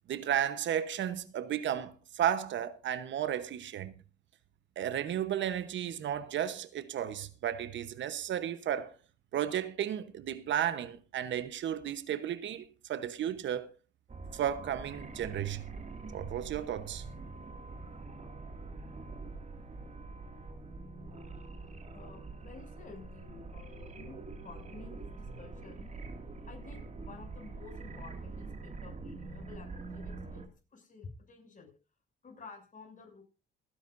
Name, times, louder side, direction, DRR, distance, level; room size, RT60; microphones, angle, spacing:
voice 1, 0.1-3.9 4.8-8.9 9.3-13.7 14.3-15.7 16.1-17.0, right 10 dB, 70° right, 1.0 m, -33 dB
sound 1, 14.1-30.5, right 3 dB, 35° right, 2.3 m, -45 dB
voice 2, 21.9-25.9 26.4-30.4 30.7-31.7 32.2-33.2, left 4 dB, 40° left, 6.8 m, -51 dB
27.5 x 10.0 x 2.6 m
cardioid pair, 90°, 20 cm